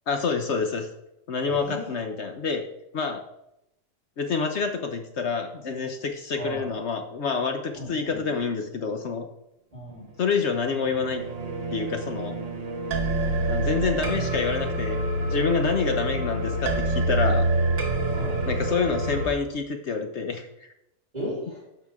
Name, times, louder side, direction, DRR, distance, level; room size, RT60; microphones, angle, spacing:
voice 1, 0.1-0.9 1.3-2.6 2.9-3.2 4.2-9.3 10.2-11.2 11.7-12.4 13.5-17.5 18.4-20.5, left 5 dB, 65° left, 5 dB, 1.1 m, -27 dB
voice 2, 1.5-1.9 6.3-6.7 7.8-8.3 9.7-10.1 18.1-18.4 21.1-21.6, equal, 30° right, -5 dB, 3.8 m, -35 dB
sound 1, 10.5-19.3, right 2 dB, 70° right, 1.6 m, -27 dB
12.0 x 6.8 x 3.6 m, 0.83 s
omnidirectional pair, 1.3 m